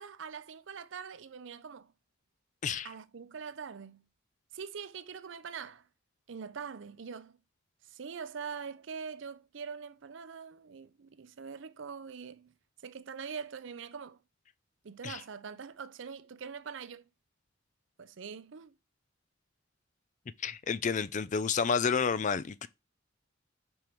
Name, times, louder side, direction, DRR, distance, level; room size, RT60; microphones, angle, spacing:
voice 1, 0.0-1.9 2.8-4.0 4.5-5.8 6.3-7.4 7.9-12.5 12.8-14.2 14.8-17.0 18.0-18.7, right 6 dB, 65° right, 0.5 m, -43 dB
voice 2, 20.4-22.7, left 6 dB, 40° left, 0.4 m, -30 dB
5.4 x 4.7 x 4.5 m
head